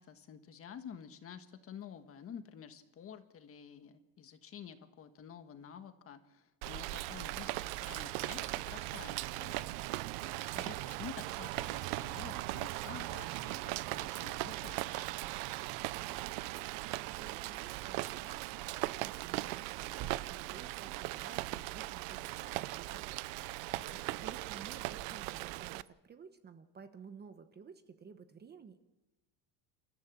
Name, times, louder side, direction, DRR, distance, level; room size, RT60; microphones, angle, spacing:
voice 1, 0.0-9.8 10.3-15.1 23.7-24.0, left 7 dB, 30° left, 9 dB, 1.5 m, -50 dB
Rain, 6.6-25.8, right 19 dB, 75° right, 0.8 m, -39 dB
voice 2, 15.9-23.4 23.7-28.8, right 6 dB, 20° right, 9 dB, 1.2 m, -54 dB
sound 1, 17.5-17.6 17.9-18.1 18.4-18.5 18.8-21.4, right 12 dB, 40° right, 0.9 m, -52 dB
27.5 x 14.5 x 7.5 m, 1.0 s
cardioid pair, 160°, 46 cm